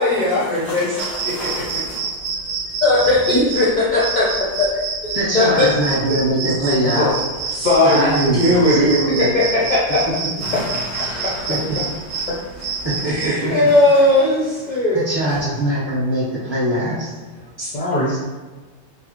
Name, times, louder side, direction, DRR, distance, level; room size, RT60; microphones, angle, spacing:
voice 1, 0.0-1.7 2.8-4.3 4.6-4.7 5.3-5.7 6.1-7.2 7.5-8.9 9.2-10.0 13.0-15.0 17.6-18.2, left 2 dB, 50° left, -7 dB, 0.6 m, -18 dB
voice 2, 0.6-2.0 10.4-12.9 13.9-14.0 15.3-15.4, equal, 65° right, -10 dB, 1.9 m, -33 dB
sound 1, 1.0-13.3, right 5 dB, 85° right, 1.1 m, -27 dB
voice 3, 5.1-7.2 7.8-9.3 10.5-10.6 11.5-11.8 12.8-13.5 14.9-17.2 18.1-18.2, right 1 dB, 20° right, -8 dB, 1.1 m, -22 dB
5.1 x 2.1 x 2.9 m, 1.3 s
omnidirectional pair, 1.4 m